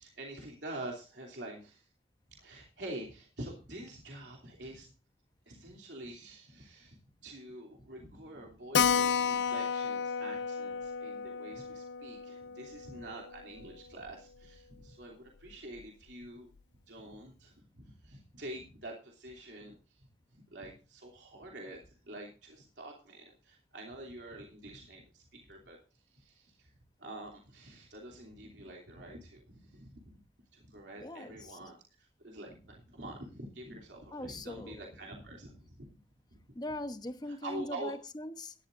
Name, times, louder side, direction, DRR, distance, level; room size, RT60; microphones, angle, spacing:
voice 1, 0.0-1.8 2.4-4.9 5.5-16.5 16.9-20.0 20.3-25.8 26.1-26.7 27.0-30.1 30.5-36.0 36.3-36.4 37.3-37.9, right 1 dB, 80° right, 2.9 m, -47 dB
Keyboard (musical), 8.7-13.8 14.1-14.2 14.5-14.6 14.8-14.9 15.5-15.8, left 7 dB, 90° left, 0.5 m, -32 dB
voice 2, 30.9-31.6 34.1-34.9 36.5-38.5, left 1 dB, 25° left, 0.9 m, -41 dB
17.0 x 12.0 x 2.6 m
head